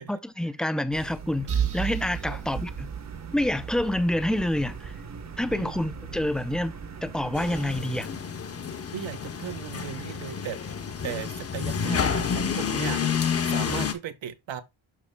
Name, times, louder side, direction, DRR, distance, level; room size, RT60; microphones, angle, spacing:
voice 1, 0.1-2.9 3.3-5.0 5.4-6.7 7.0-8.1, left 1 dB, ahead, 0.4 m, -27 dB
sound 1, 0.9-7.8, right 5 dB, 35° right, 0.9 m, -41 dB
sound 2, 1.5-5.2, right 8 dB, 55° right, 1.4 m, -33 dB
sound 3, 7.3-13.9, left 7 dB, 30° left, 0.8 m, -29 dB
voice 2, 8.9-10.6 11.0-14.6, right 9 dB, 75° right, 1.0 m, -37 dB
12.0 x 4.1 x 2.2 m
wide cardioid pair, 150°, 46 cm